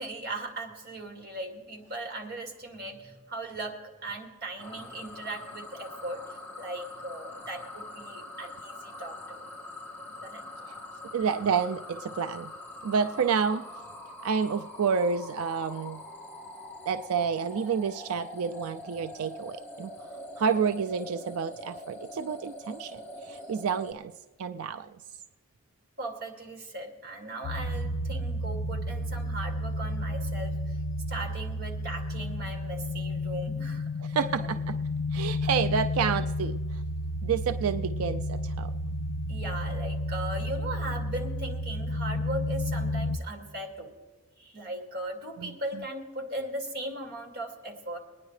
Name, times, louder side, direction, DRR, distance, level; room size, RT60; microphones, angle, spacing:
voice 1, 0.0-9.5 10.2-10.5 26.0-30.8 31.1-33.9 34.3-34.5 39.3-43.9 44.4-48.0, right 2 dB, 50° right, 2 dB, 2.1 m, -38 dB
sound 1, 4.6-23.9, left 1 dB, 10° left, 1.3 m, -44 dB
voice 2, 11.1-12.5 12.8-13.6 14.2-16.0 16.9-19.9 20.4-24.1 24.4-24.9 34.0-34.8 35.1-36.8 37.2-38.7 45.4-45.5, right 6 dB, 85° right, 8 dB, 0.4 m, -29 dB
sound 2, 27.4-43.2, left 1 dB, 70° left, 0.8 m, -32 dB
23.0 x 9.8 x 3.2 m, 1.3 s
head